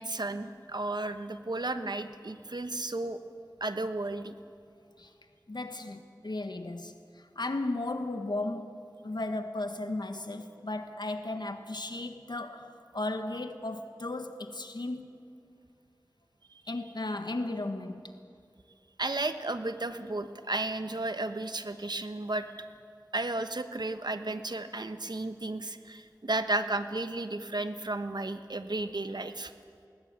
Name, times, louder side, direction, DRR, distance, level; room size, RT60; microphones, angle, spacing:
voice 1, 0.0-3.2 3.6-4.3 19.0-22.5 23.1-29.5, right 2 dB, 75° right, 1.1 m, -33 dB
voice 2, 5.5-7.0 7.3-15.2 16.7-18.1, left 2 dB, 85° left, 1.4 m, -35 dB
19.5 x 19.5 x 9.0 m
wide cardioid pair, 40°, 7 cm